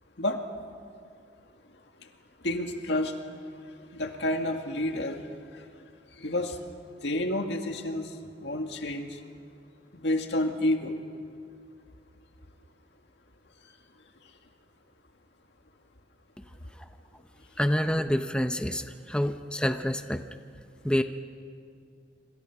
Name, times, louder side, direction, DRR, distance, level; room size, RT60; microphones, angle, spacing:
voice 1, 2.4-3.1 3.9-5.2 5.5-5.6 6.2-6.6 7.0-8.1 8.4-9.2 9.9-11.0, left 1 dB, 70° left, 4 dB, 2.0 m, -29 dB
voice 2, 17.6-20.2 20.8-21.0, equal, 5° left, 7 dB, 0.7 m, -27 dB
26.5 x 26.0 x 6.0 m, 2.3 s
head